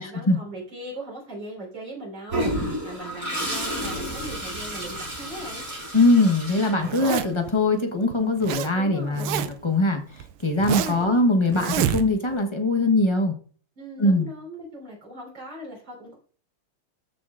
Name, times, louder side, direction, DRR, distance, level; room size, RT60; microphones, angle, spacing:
voice 1, 0.0-5.6 8.7-9.5 10.5-11.2 13.8-16.1, right 1 dB, 55° right, -2 dB, 4.8 m, -39 dB
Toilet flush, 2.3-7.4, equal, 40° right, 4.4 m, -31 dB
voice 2, 5.9-10.0 10.4-13.3 14.0-14.3, left 2 dB, 20° left, 4 dB, 0.7 m, -21 dB
Zipper (clothing), 6.8-7.5 8.1-8.7 9.0-9.7 10.2-11.1 11.5-12.4, right 10 dB, 85° right, 1.6 m, -27 dB
14.5 x 6.6 x 2.5 m, 0.44 s
omnidirectional pair, 2.4 m